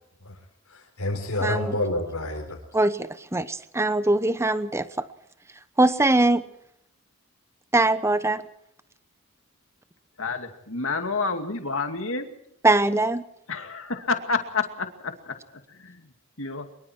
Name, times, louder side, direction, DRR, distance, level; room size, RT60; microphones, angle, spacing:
voice 1, 0.7-2.6, left 1 dB, 90° left, 0 dB, 4.5 m, -28 dB
voice 2, 1.4-1.7 2.7-5.1 5.8-6.5 7.7-8.4 12.6-13.2, right 2 dB, 10° right, 13 dB, 1.0 m, -22 dB
voice 3, 10.2-12.3 13.5-14.9 15.8-15.9 16.4-16.6, left 4 dB, 65° left, 6 dB, 2.4 m, -28 dB
24.0 x 23.0 x 4.6 m, 0.77 s
head